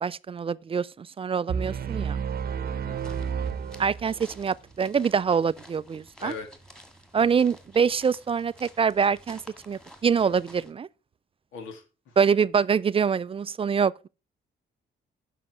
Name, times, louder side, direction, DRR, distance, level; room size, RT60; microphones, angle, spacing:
voice 1, 0.0-2.2 3.8-6.3 7.1-9.4 9.7-10.9 12.2-14.1, right 6 dB, 30° right, 0.3 m, -25 dB
sound 1, 1.5-4.4, right 7 dB, 50° right, 0.8 m, -31 dB
voice 2, 2.7-3.3 6.2-6.5 11.5-12.2, left 5 dB, 85° left, 2.3 m, -41 dB
sound 2, 3.0-10.7, equal, 5° left, 1.8 m, -51 dB
7.4 x 6.0 x 5.6 m
cardioid pair, 90°, 20 cm